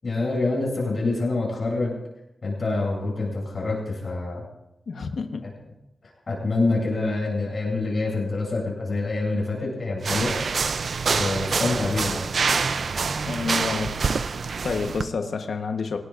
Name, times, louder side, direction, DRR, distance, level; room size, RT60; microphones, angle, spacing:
voice 1, 0.0-2.0 2.4-4.4 5.4-5.5 6.3-10.3 11.1-12.2, left 3 dB, 45° left, -4 dB, 7.5 m, -26 dB
voice 2, 4.9-5.5 13.2-13.9 14.6-16.0, left 5 dB, 75° left, 4 dB, 1.1 m, -29 dB
sound 1, 10.0-15.1, right 5 dB, 60° right, 0.5 m, -26 dB
26.5 x 19.0 x 2.6 m, 0.88 s
wide cardioid pair, 170°, 0 cm